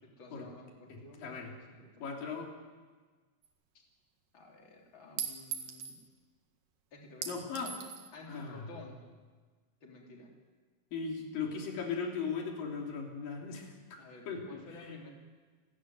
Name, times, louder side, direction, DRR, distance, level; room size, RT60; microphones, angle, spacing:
voice 1, 0.0-2.1 3.7-3.8 4.3-6.0 6.9-7.4 8.1-9.1 9.8-10.3 14.0-15.1, left 3 dB, 35° left, 0 dB, 4.0 m, -52 dB
voice 2, 0.9-1.5 2.0-2.5 7.3-7.8 8.3-8.8 10.9-14.0 14.3-15.0, left 5 dB, 90° left, 0 dB, 4.9 m, -38 dB
Chink clink, 3.4-3.5 5.2-6.0 7.2-8.1, right 7 dB, 80° right, 3.5 m, -40 dB
29.5 x 13.5 x 9.4 m, 1.4 s
omnidirectional pair, 3.8 m